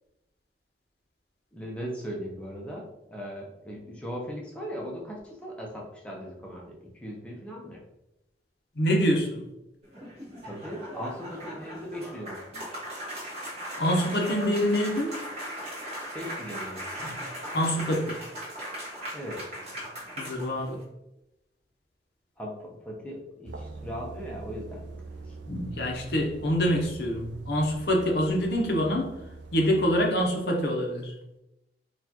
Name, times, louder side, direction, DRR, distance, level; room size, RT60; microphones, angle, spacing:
voice 1, 1.5-7.8 10.4-12.4 16.1-16.9 19.1-19.4 22.4-24.9 25.2-25.4, equal, 5° left, -2 dB, 0.6 m, -38 dB
voice 2, 8.8-9.4 13.8-15.2 17.0-17.1 17.5-18.2 20.2-20.8 25.5-29.1 29.5-31.1, equal, 65° left, 0 dB, 0.7 m, -26 dB
sound 1, 9.8-20.8, equal, 35° right, 1.4 m, -38 dB
sound 2, 23.4-30.1, right 3 dB, 90° right, 0.4 m, -43 dB
4.3 x 2.4 x 2.8 m, 0.88 s
head